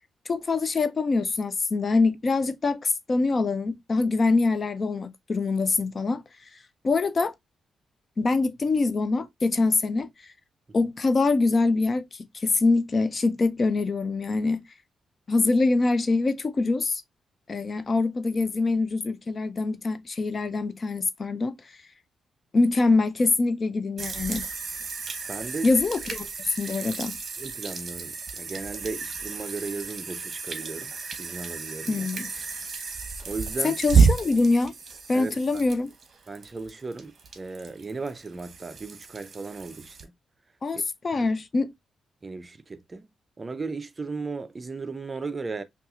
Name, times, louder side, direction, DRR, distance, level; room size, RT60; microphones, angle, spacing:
voice 1, 0.3-6.2 6.8-7.3 8.2-10.1 10.7-14.6 15.3-17.0 17.5-21.6 22.5-24.5 25.6-27.2 31.9-32.3 33.6-34.7 35.1-35.9 40.6-41.7, left 3 dB, 35° left, 0.4 m, -24 dB
sound 1, 24.0-40.0, right 5 dB, 45° right, 0.9 m, -30 dB
voice 2, 25.3-25.7 27.4-30.9 31.2-32.1 33.3-33.8 35.1-35.6 36.3-40.1 40.7-40.8 41.2-41.3 42.2-43.1 43.4-45.6, right 4 dB, 25° right, 0.4 m, -36 dB
5.5 x 2.4 x 2.4 m
cardioid pair, 125°, 0 cm